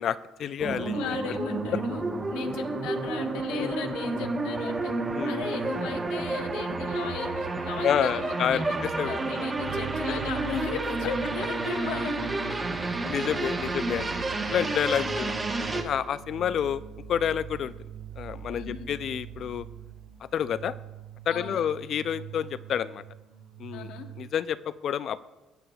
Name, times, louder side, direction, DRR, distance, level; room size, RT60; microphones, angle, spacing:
voice 1, 0.0-1.1 1.7-1.8 3.6-3.7 5.1-5.4 7.8-9.2 10.1-10.3 12.8-15.3 15.7-16.8 17.1-17.7 18.2-19.7 20.3-20.8 21.3-23.0 23.6-23.9 24.2-24.6 24.8-25.2, left 9 dB, 55° left, 16 dB, 0.3 m, -29 dB
sound 1, 0.6-15.8, right 3 dB, 25° right, 1.0 m, -30 dB
voice 2, 0.9-2.0 2.3-4.9 5.3-8.6 9.1-12.3 15.0-15.3 18.5-18.9 21.3-21.7 23.7-24.1, left 6 dB, 85° left, 5 dB, 0.8 m, -36 dB
sound 2, 9.6-24.3, right 8 dB, 80° right, 0.8 m, -43 dB
16.0 x 7.5 x 2.3 m, 1.1 s
cardioid pair, 105°, 0 cm